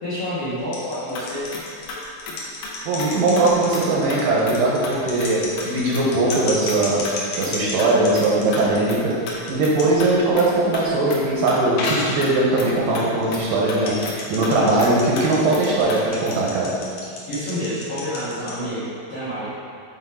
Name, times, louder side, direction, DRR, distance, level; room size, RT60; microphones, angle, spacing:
voice 1, 0.0-1.5 17.3-19.5, equal, 55° left, -12 dB, 1.6 m, -28 dB
sound 1, 0.6-8.8 9.1-9.5 9.8-9.9 10.6-10.7 11.7-12.2 12.7-12.8 13.1-13.2 13.8-18.5, left 3 dB, 90° left, 1.4 m, -31 dB
sound 2, 1.2-2.7 3.0-3.1 3.4-3.5 3.7-3.8 4.1-4.2 4.5-4.6 4.8-5.3 5.6-6.0 6.3-6.8 7.1-7.2 7.4-7.9 8.2-8.3 8.5-8.6 8.9-9.0 9.3-9.4 9.6-10.1 10.3-10.5 10.7-11.6 11.8-11.9 12.2-13.1 13.3-13.4 13.7-14.1 14.4-14.5 14.8-14.9 15.2-15.3 15.5-15.6 15.9-16.0 16.3-16.4, left 3 dB, 75° left, 2.3 m, -33 dB
voice 2, 2.9-7.1 7.4-9.2 9.5-16.7, right 2 dB, 75° right, -4 dB, 2.2 m, -20 dB
7.5 x 3.0 x 4.4 m, 2.2 s
omnidirectional pair, 4.3 m